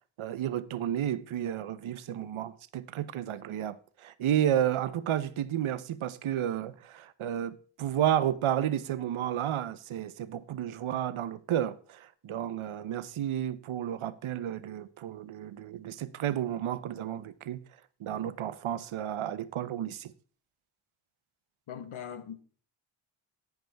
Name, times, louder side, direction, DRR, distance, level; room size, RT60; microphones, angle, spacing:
voice 1, 0.2-17.6 18.0-20.1, right 10 dB, 85° right, 0.8 m, -32 dB
voice 2, 21.7-22.4, left 9 dB, 90° left, 1.2 m, -40 dB
10.5 x 9.3 x 3.4 m
wide cardioid pair, 100°, 47 cm